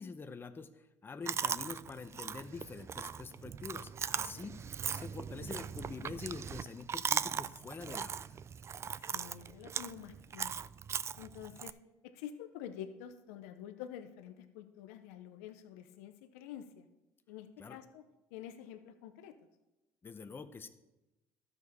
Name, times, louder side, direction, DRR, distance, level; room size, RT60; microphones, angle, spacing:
voice 1, 0.0-8.4 17.6-17.8 20.0-20.7, left 4 dB, 25° left, 9 dB, 0.8 m, -46 dB
Chewing mastication, 1.3-11.7, right 7 dB, 35° right, 0.3 m, -39 dB
voice 2, 8.9-10.7 11.2-11.8 12.0-16.9 17.3-18.0 18.3-19.3, left 10 dB, 85° left, 8 dB, 0.6 m, -48 dB
12.5 x 6.7 x 4.2 m, 0.99 s
supercardioid pair, 75°, 8 cm